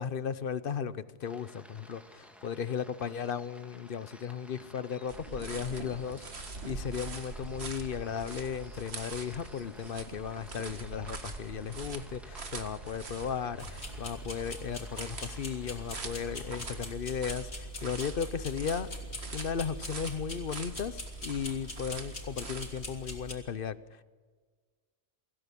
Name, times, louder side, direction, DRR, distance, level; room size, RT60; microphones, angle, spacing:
voice 1, 0.0-18.9 19.3-24.0, left 7 dB, 55° left, 0.9 m, -36 dB
sound 1, 1.2-16.9, equal, ahead, 2.1 m, -55 dB
sound 2, 5.1-23.1, right 3 dB, 65° right, 2.0 m, -44 dB
sound 3, 13.6-23.3, equal, 70° left, 3.6 m, -42 dB
24.0 x 16.0 x 8.3 m
omnidirectional pair, 1.2 m